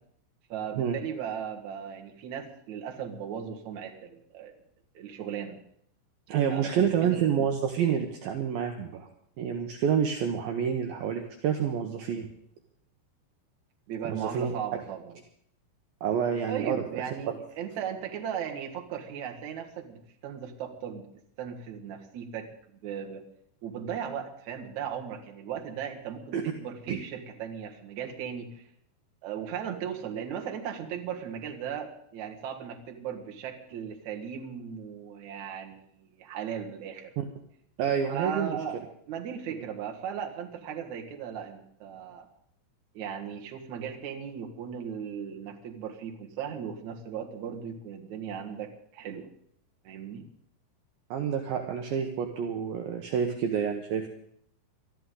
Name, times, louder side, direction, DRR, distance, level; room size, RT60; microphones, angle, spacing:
voice 1, 0.5-4.5 4.9-5.6 6.5-7.2 13.9-15.2 16.5-21.1 21.4-22.5 22.8-23.2 23.6-28.6 29.2-37.1 38.1-42.3 42.9-49.3 49.8-50.2, right 8 dB, 60° right, 2 dB, 2.0 m, -37 dB
voice 2, 6.3-9.1 9.4-12.3 14.1-14.5 16.0-17.0 26.3-26.4 26.9-27.0 37.2-37.3 37.8-38.6 39.5-39.6 51.1-54.1, right 8 dB, 80° right, 3 dB, 2.1 m, -28 dB
22.5 x 13.0 x 3.8 m, 0.68 s
omnidirectional pair, 5.6 m